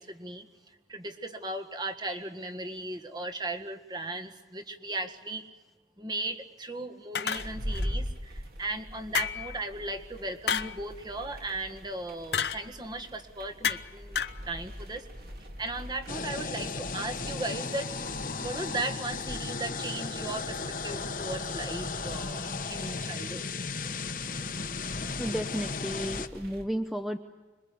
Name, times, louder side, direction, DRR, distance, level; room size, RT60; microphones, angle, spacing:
voice 1, 0.0-5.5 6.0-14.2 14.4-15.1 15.6-17.9 18.4-23.5, right 2 dB, 25° right, 5 dB, 1.7 m, -37 dB
sound 1, 7.1-7.9 9.1-9.6 10.5-10.8 12.3-12.6 13.6-13.9 14.1-14.4, left 7 dB, 75° left, 0.9 m, -30 dB
sound 2, 7.3-26.6, equal, 55° right, 3.2 m, -43 dB
sound 3, 16.1-26.3, left 4 dB, 50° left, 1.2 m, -35 dB
voice 2, 25.2-27.2, equal, ahead, 6 dB, 0.8 m, -32 dB
26.0 x 22.5 x 8.5 m, 1.2 s
head